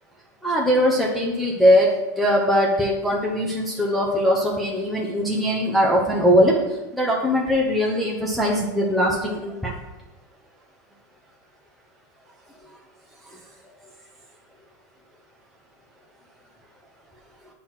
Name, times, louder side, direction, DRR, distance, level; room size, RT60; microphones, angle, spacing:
voice 1, 0.4-6.6 6.9-9.7, equal, ahead, -4 dB, 0.8 m, -21 dB
8.5 x 3.0 x 5.8 m, 1.0 s
supercardioid pair, 145°, 9 cm